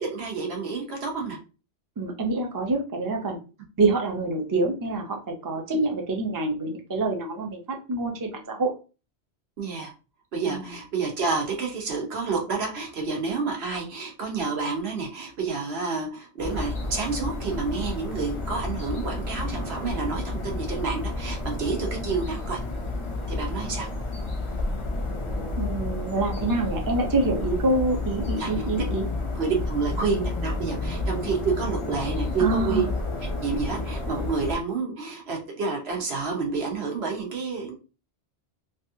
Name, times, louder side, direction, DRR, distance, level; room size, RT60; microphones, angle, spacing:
voice 1, 0.0-1.4 9.6-9.9 10.3-22.6 23.3-23.9 28.4-28.7 29.3-32.9 33.4-37.7, right 4 dB, 70° right, 1 dB, 1.1 m, -29 dB
voice 2, 2.0-3.4 3.8-8.7 10.5-10.7 25.6-29.1 32.4-32.9, right 2 dB, 30° right, 2 dB, 0.4 m, -26 dB
sound 1, 16.4-34.6, left 2 dB, 35° left, 0.5 m, -31 dB
3.3 x 2.4 x 2.7 m, 0.33 s
omnidirectional pair, 1.1 m